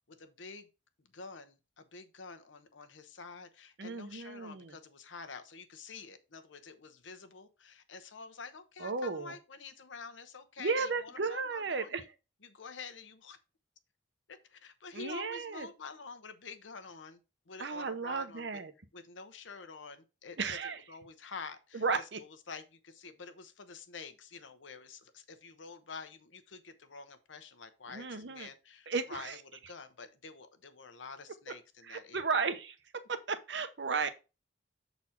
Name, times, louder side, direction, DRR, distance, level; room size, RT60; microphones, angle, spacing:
voice 1, 0.1-0.7 1.0-12.1 12.4-13.4 14.3-17.2 17.5-18.6 18.9-20.4 20.9-32.3, left 5 dB, 85° left, 0.9 m, -48 dB
voice 2, 3.8-4.8 8.8-9.3 10.6-12.0 14.9-15.7 17.6-18.7 20.4-20.8 21.7-22.2 27.9-28.5 28.9-29.4 31.8-32.8 33.1-34.1, right 4 dB, 65° right, 0.8 m, -34 dB
7.2 x 4.1 x 4.4 m
head